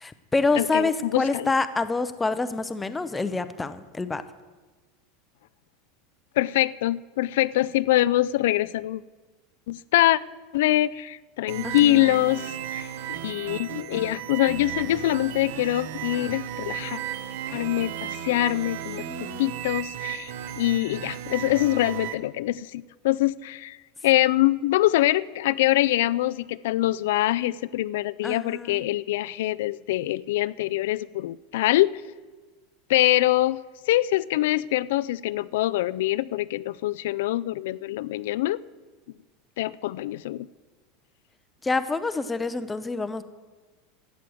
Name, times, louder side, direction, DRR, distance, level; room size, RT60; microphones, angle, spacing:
voice 1, 0.0-4.2 11.6-12.2 19.0-19.4 28.2-28.9 41.6-43.2, left 3 dB, 5° left, 12 dB, 0.5 m, -27 dB
voice 2, 0.6-1.5 6.4-9.0 9.7-10.2 10.5-17.0 17.5-19.1 19.4-23.8 24.0-31.9 32.9-33.6 33.9-38.6 39.6-40.5, left 15 dB, 70° left, 18 dB, 0.3 m, -24 dB
sound 1, 11.5-22.1, right 11 dB, 70° right, 1.0 m, -35 dB
13.5 x 8.4 x 7.7 m, 1.3 s
supercardioid pair, 180°, 0 cm